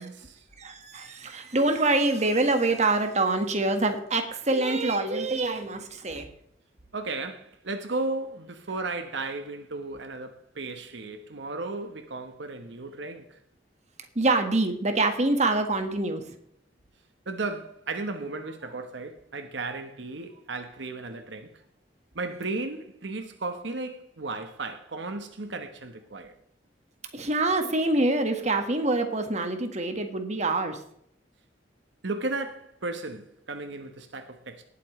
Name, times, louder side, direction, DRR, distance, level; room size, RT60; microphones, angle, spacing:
voice 1, 0.0-0.4 6.9-13.4 17.3-21.5 22.1-26.3 32.0-34.6, right 3 dB, 70° right, 1.1 m, -35 dB
voice 2, 0.6-6.3 14.1-16.3 27.1-30.8, right 2 dB, 40° right, 1.6 m, -25 dB
19.0 x 8.5 x 3.2 m
head